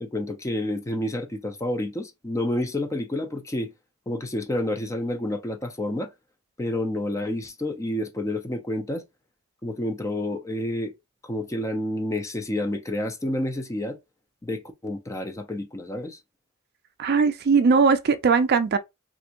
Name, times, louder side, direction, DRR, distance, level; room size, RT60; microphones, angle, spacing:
voice 1, 0.0-3.7 4.1-6.1 6.6-9.0 9.6-10.9 11.2-14.0 14.4-16.2, left 1 dB, 15° left, 0.4 m, -29 dB
voice 2, 17.0-18.8, right 5 dB, 50° right, 0.4 m, -19 dB
3.4 x 2.5 x 2.8 m
head